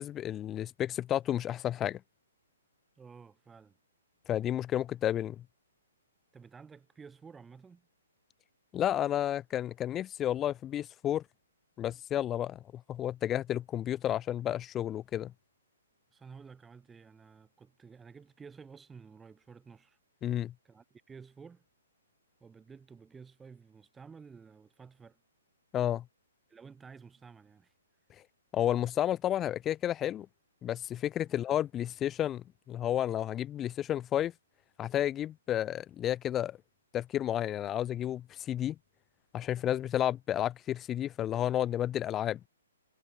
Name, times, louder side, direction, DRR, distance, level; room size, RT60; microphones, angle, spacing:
voice 1, 0.0-2.0 4.3-5.4 8.7-11.2 11.8-15.3 20.2-20.5 25.7-26.0 28.5-30.3 30.6-34.3 34.8-36.6 36.9-38.8 39.3-42.4, left 11 dB, 20° left, 1.5 m, -31 dB
voice 2, 3.0-3.8 6.3-7.9 16.1-20.0 20.6-21.6 22.4-25.2 26.5-27.7 31.2-31.4, right 5 dB, 10° right, 7.9 m, -52 dB
figure-of-eight pair, 125°, 0 cm